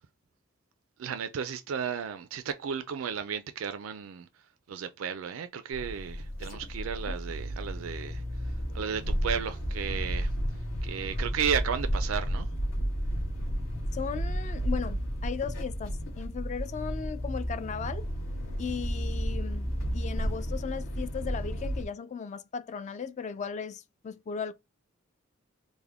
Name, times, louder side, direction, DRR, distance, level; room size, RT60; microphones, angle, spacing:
voice 1, 1.0-4.3 4.7-8.2 8.7-10.3 10.8-12.5, right 7 dB, 85° right, 0.4 m, -33 dB
sound 1, 5.7-21.9, equal, 70° left, 1.3 m, -32 dB
voice 2, 13.9-18.1 18.6-24.5, left 6 dB, 35° left, 0.3 m, -37 dB
3.5 x 2.1 x 3.4 m
head